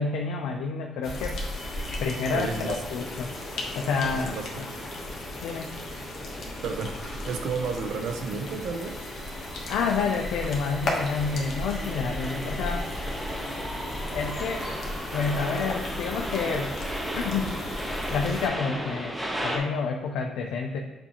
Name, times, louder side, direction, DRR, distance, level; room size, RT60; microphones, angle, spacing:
voice 1, 0.0-1.3 2.0-3.3 3.7-4.4 5.4-5.7 9.7-12.9 14.1-14.6 15.1-16.7 17.1-17.5 18.1-20.8, left 5 dB, 90° left, 2 dB, 0.4 m, -29 dB
sound 1, 1.0-18.5, left 1 dB, 60° left, 1.0 m, -36 dB
sound 2, 1.5-19.6, equal, 5° right, 0.8 m, -37 dB
voice 2, 2.3-2.8 4.1-4.8 6.6-9.1, right 5 dB, 80° right, 6 dB, 0.5 m, -32 dB
6.9 x 2.6 x 2.8 m, 1.1 s
cardioid pair, 90°, 0 cm